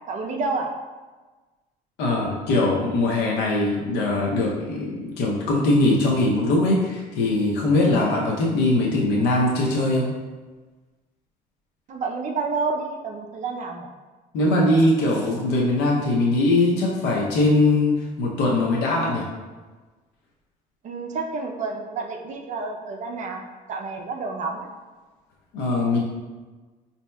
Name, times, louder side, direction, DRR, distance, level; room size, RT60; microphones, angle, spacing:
voice 1, 0.1-0.7 11.9-13.9 20.8-23.4 23.7-24.7, right 4 dB, 45° right, 2 dB, 0.5 m, -29 dB
voice 2, 2.0-10.1 14.3-19.3 25.5-26.0, left 2 dB, 90° left, -3 dB, 0.7 m, -21 dB
5.2 x 2.7 x 2.2 m, 1.3 s
cardioid pair, 110°, 17 cm